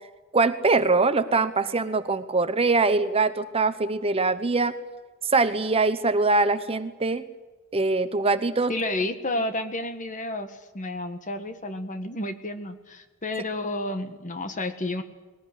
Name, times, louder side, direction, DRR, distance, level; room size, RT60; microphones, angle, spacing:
voice 1, 0.3-4.7 5.3-7.2 7.7-8.7, right 3 dB, 25° right, 11 dB, 0.8 m, -23 dB
voice 2, 8.7-15.0, left 2 dB, 35° left, 9 dB, 1.8 m, -31 dB
21.0 x 18.5 x 10.0 m, 1.3 s
head